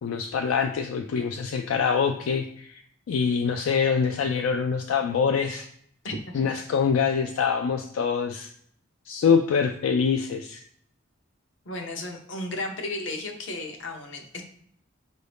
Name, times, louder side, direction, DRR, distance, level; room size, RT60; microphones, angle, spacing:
voice 1, 0.0-2.8 3.1-5.7 6.3-8.5 9.1-10.6, left 6 dB, 85° left, 5 dB, 0.3 m, -25 dB
voice 2, 6.0-6.6 11.7-14.4, left 2 dB, 65° left, 3 dB, 0.8 m, -34 dB
4.6 x 2.6 x 3.4 m, 0.65 s
head